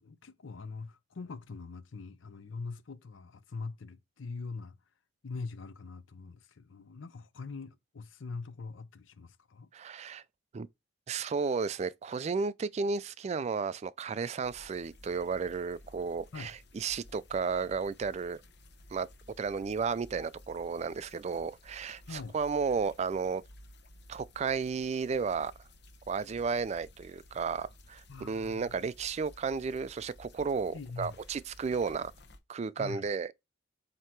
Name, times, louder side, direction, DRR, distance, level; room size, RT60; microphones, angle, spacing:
voice 1, 0.0-4.8 5.2-9.7 16.3-16.5 22.1-22.4 28.1-28.7 30.7-31.2 32.8-33.1, left 4 dB, 80° left, 0.6 m, -43 dB
voice 2, 9.7-10.2 10.5-10.7 11.1-18.4 18.9-19.1 19.4-23.4 24.1-25.5 26.1-32.1 32.5-33.3, right 5 dB, 35° right, 0.3 m, -33 dB
sound 1, 14.4-32.4, left 1 dB, 60° left, 0.9 m, -55 dB
7.6 x 2.9 x 4.5 m
head